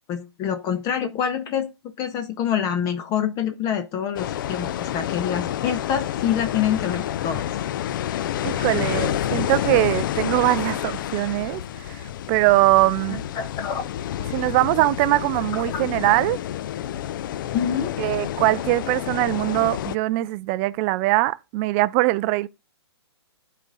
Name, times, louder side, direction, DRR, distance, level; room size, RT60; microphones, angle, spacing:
voice 1, 0.1-1.7 2.0-7.5 13.3-13.9 15.7-15.8 17.5-18.0, left 8 dB, 25° left, 0.8 m, -26 dB
sound 1, 4.2-20.0, left 11 dB, 50° left, 0.5 m, -29 dB
voice 2, 8.4-13.2 14.3-16.4 18.0-22.5, right 19 dB, 30° right, 0.4 m, -22 dB
12.0 x 4.2 x 3.9 m
hypercardioid pair, 130°, 14 cm